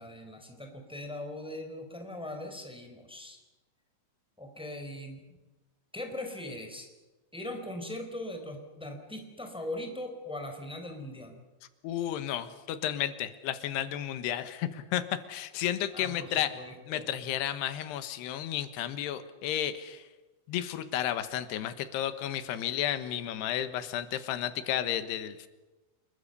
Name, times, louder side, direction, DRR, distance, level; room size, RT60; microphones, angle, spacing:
voice 1, 0.0-3.4 4.4-5.2 5.9-6.9 7.3-11.4 15.9-17.1, left 1 dB, ahead, 4 dB, 3.6 m, -40 dB
voice 2, 11.8-15.0 15.3-16.5 16.9-20.0 20.5-25.5, left 11 dB, 90° left, 12 dB, 3.3 m, -32 dB
28.5 x 22.0 x 6.7 m, 1.1 s
omnidirectional pair, 4.7 m